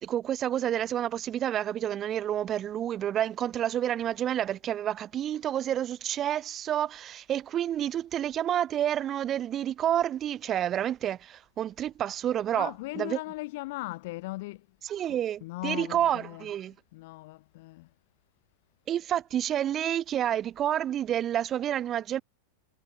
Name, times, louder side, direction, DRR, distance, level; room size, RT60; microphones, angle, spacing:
voice 1, 0.0-12.7 13.0-13.2 14.8-16.7 18.9-22.2, right 11 dB, 30° right, 0.4 m, -29 dB
voice 2, 12.5-14.6 15.1-16.5 16.9-17.9, left 21 dB, 50° left, 3.1 m, -38 dB
figure-of-eight pair, 90°, 0 cm